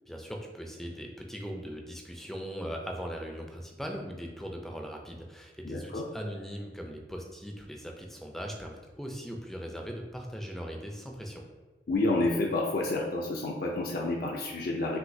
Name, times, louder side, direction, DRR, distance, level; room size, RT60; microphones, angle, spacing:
voice 1, 0.1-11.4, equal, ahead, 2 dB, 0.4 m, -39 dB
voice 2, 5.6-6.1 11.9-15.0, left 2 dB, 55° left, -1 dB, 0.5 m, -29 dB
6.1 x 2.7 x 2.7 m, 1.3 s
head